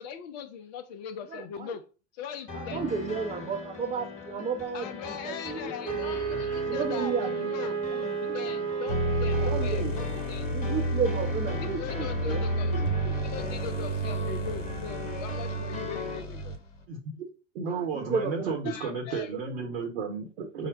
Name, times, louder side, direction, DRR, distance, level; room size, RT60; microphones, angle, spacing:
voice 1, 0.0-1.9 2.1-3.0 4.7-10.6 11.6-16.6 18.6-19.3, left 8 dB, 35° left, 0.4 m, -40 dB
voice 2, 1.3-1.8 2.5-6.3 6.6-7.6 7.9-8.4 9.5-10.2 10.5-12.9 17.6-18.7 19.5-19.6, right 5 dB, 20° right, 0.6 m, -34 dB
sound 1, 2.5-16.2, left 4 dB, 20° left, 0.9 m, -39 dB
Wind instrument woodwind instrument, 5.8-10.0, right 7 dB, 80° right, 0.6 m, -32 dB
sound 2, 8.9-16.8, right 1 dB, 80° left, 0.9 m, -31 dB
voice 3, 16.9-17.3 17.5-20.7, right 4 dB, 60° right, 1.0 m, -33 dB
3.9 x 2.1 x 4.5 m
figure-of-eight pair, 85°, 36 cm